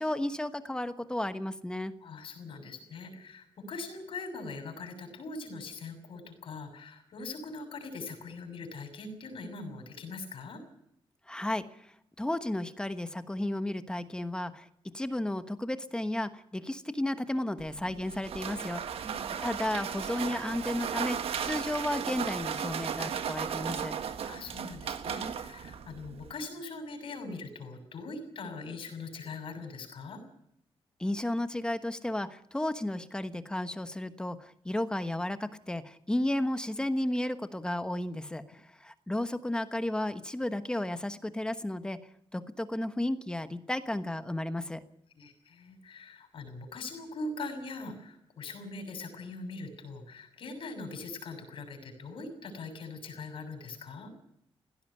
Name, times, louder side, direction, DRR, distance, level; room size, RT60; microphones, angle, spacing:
voice 1, 0.0-1.9 11.3-11.9 12.2-14.7 14.9-19.0 19.4-24.0 31.0-42.0 42.3-44.8, left 1 dB, 10° left, 10 dB, 1.1 m, -33 dB
voice 2, 2.0-10.6 19.0-19.3 24.2-30.2 45.1-54.1, left 3 dB, 65° left, 5 dB, 6.7 m, -42 dB
sound 1, 17.6-26.3, right 8 dB, 80° right, 1.5 m, -36 dB
18.0 x 16.5 x 10.0 m, 0.74 s
wide cardioid pair, 175°, 10 cm